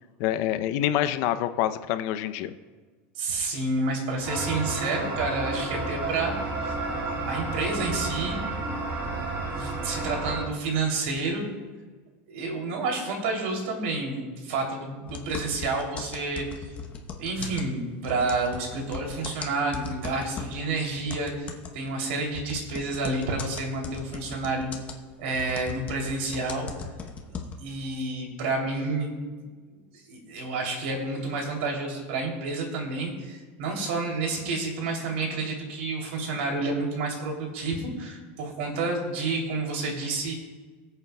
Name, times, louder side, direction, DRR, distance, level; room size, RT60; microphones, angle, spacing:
voice 1, 0.2-2.5, left 12 dB, 50° left, 11 dB, 0.5 m, -26 dB
voice 2, 3.1-8.4 9.5-11.5 12.3-16.5 17.2-24.7 25.2-26.7 27.3-29.2 29.7-40.3, right 3 dB, 80° right, 1 dB, 2.9 m, -30 dB
sound 1, 4.2-10.4, right 2 dB, 30° right, 1.4 m, -31 dB
sound 2, 15.1-20.7 21.1-27.8, left 6 dB, 25° left, 0.8 m, -38 dB
23.0 x 8.1 x 2.2 m, 1.4 s
supercardioid pair, 170°, 6 cm